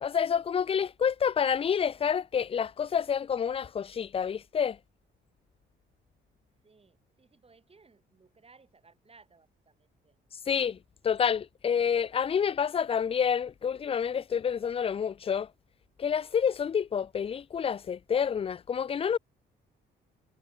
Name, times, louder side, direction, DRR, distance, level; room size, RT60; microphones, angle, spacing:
voice 1, 0.0-4.8 10.5-10.8 11.0-15.5 16.0-19.2, left 7 dB, 30° left, 0.4 m, -28 dB
voice 2, 6.6-10.2, right 4 dB, 30° right, 6.5 m, -61 dB
cardioid pair, 90°, 20 cm